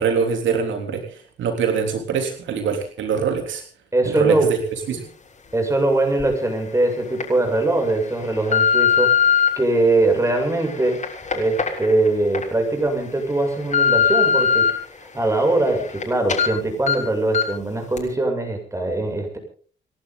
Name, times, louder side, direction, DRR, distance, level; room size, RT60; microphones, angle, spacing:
voice 1, 0.0-3.6 4.1-4.6 4.9-5.1, right 6 dB, 75° right, 4 dB, 3.5 m, -23 dB
voice 2, 3.9-4.5 5.5-11.0 11.3-14.7 15.1-19.4, right 2 dB, 15° right, 3 dB, 7.2 m, -21 dB
sound 1, 6.2-6.3 6.9-7.2 7.9-9.5 10.1-12.4 12.9-13.0 13.4-14.7 15.1-16.0 16.3-16.5 16.9-17.0 17.3-17.6 18.0-18.1, left 7 dB, 35° left, 6.6 m, -21 dB
29.0 x 11.5 x 4.0 m, 0.43 s
cardioid pair, 90°, 20 cm